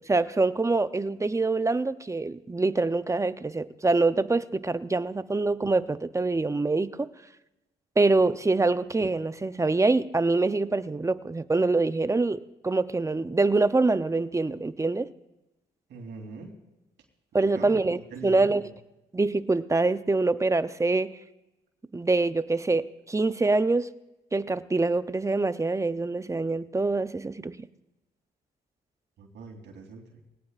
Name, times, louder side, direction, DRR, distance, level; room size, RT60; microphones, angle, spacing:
voice 1, 0.0-6.9 8.0-15.1 17.3-18.6 19.1-21.1 21.9-23.9 24.3-27.6, right 3 dB, 15° right, 13 dB, 0.6 m, -25 dB
voice 2, 15.9-16.5 17.3-18.7 29.2-30.2, right 4 dB, 80° right, 1 dB, 3.3 m, -43 dB
22.5 x 17.5 x 2.5 m, 0.98 s
cardioid pair, 75°, 18 cm